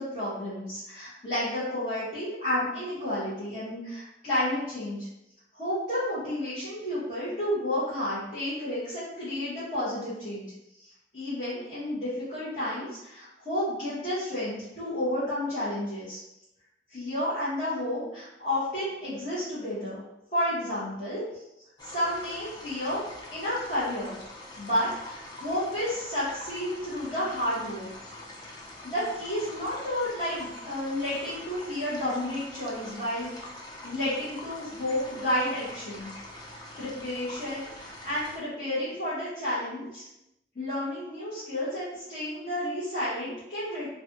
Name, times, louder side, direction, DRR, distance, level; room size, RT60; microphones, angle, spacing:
voice 1, 0.0-5.1 5.5-10.5 10.8-16.2 16.9-20.0 20.3-21.4 21.8-23.0 23.3-24.2 24.6-27.9 28.4-33.5 33.8-36.1 36.5-40.1 40.5-43.9, left 1 dB, 40° left, -14 dB, 1.1 m, -31 dB
sound 1, 21.8-38.4, left 1 dB, 25° left, 0.4 m, -44 dB
3.2 x 2.3 x 2.7 m, 0.90 s
head